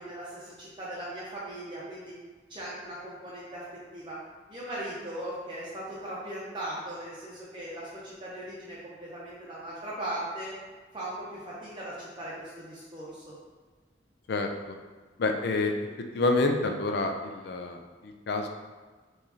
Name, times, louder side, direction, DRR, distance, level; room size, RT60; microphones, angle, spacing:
voice 1, 0.0-2.1 2.5-3.6 3.9-4.2 4.5-10.5 10.9-13.3, right 1 dB, 25° right, -7 dB, 0.6 m, -38 dB
voice 2, 15.2-15.8 16.1-18.5, left 3 dB, 65° left, 4 dB, 0.4 m, -28 dB
4.5 x 3.1 x 2.7 m, 1.4 s
head